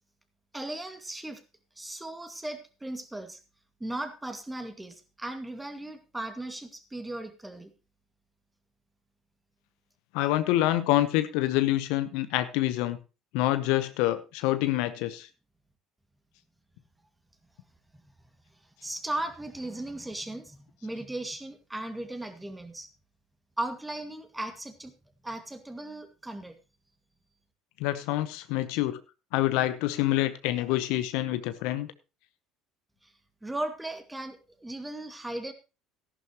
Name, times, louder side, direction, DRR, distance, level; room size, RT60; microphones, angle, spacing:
voice 1, 0.5-1.4 1.8-3.4 3.8-7.7 18.8-22.9 23.6-24.9 25.2-26.6 33.0-33.1 33.4-35.5, right 1 dB, 10° right, 7 dB, 2.0 m, -37 dB
voice 2, 10.1-13.0 13.3-15.3 27.8-29.0 29.3-31.9, left 15 dB, 75° left, 12 dB, 0.8 m, -26 dB
14.0 x 11.0 x 3.0 m, 0.30 s
hypercardioid pair, 70°, 0 cm